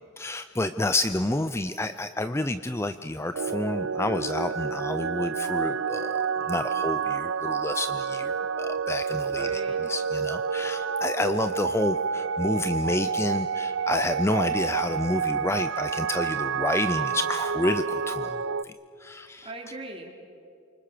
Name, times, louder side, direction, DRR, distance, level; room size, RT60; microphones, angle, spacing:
voice 1, 0.2-9.6 9.9-18.7 19.0-19.5, left 2 dB, 15° left, 10 dB, 0.5 m, -29 dB
sound 1, 3.3-18.6, right 6 dB, 65° right, 0.6 m, -29 dB
voice 2, 9.4-9.9 19.4-20.1, right 2 dB, 25° right, 1 dB, 3.7 m, -39 dB
28.0 x 25.0 x 6.7 m, 2.6 s
head